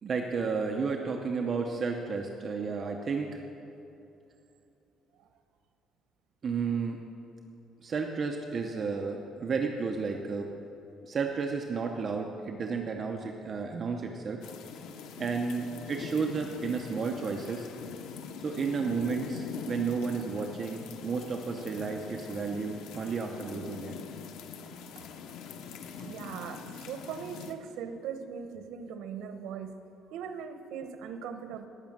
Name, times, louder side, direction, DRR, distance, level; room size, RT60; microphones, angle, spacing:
voice 1, 0.0-3.4 6.4-7.0 7.8-10.5 11.0-14.4 15.2-17.7 18.4-23.9, right 5 dB, 30° right, 2 dB, 0.7 m, -32 dB
sound 1, 14.4-27.5, left 6 dB, 85° left, 0.8 m, -43 dB
voice 2, 26.0-29.7 30.1-31.7, right 7 dB, 85° right, 8 dB, 1.0 m, -40 dB
18.5 x 6.2 x 7.4 m, 2.8 s
cardioid pair, 175°, 0 cm